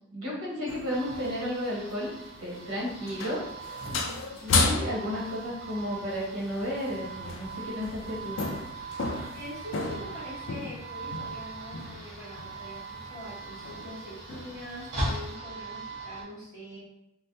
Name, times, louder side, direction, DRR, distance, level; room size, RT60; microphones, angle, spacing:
voice 1, 0.1-2.1 2.4-3.4 4.4-8.4, equal, 75° right, -5 dB, 1.1 m, -33 dB
sound 1, 0.7-1.5 2.2-2.6 2.9-5.4 6.6-6.9 7.2-11.4 11.7-12.1 12.4-12.6 13.0-13.2 13.6-14.0 14.3-14.6 15.0-15.3, left 3 dB, 55° left, 0.3 m, -33 dB
sound 2, 0.9-16.2, right 3 dB, 50° right, 0.8 m, -40 dB
voice 2, 3.8-4.2 9.1-16.8, equal, 15° right, -10 dB, 0.9 m, -43 dB
3.2 x 2.1 x 2.6 m, 0.83 s
head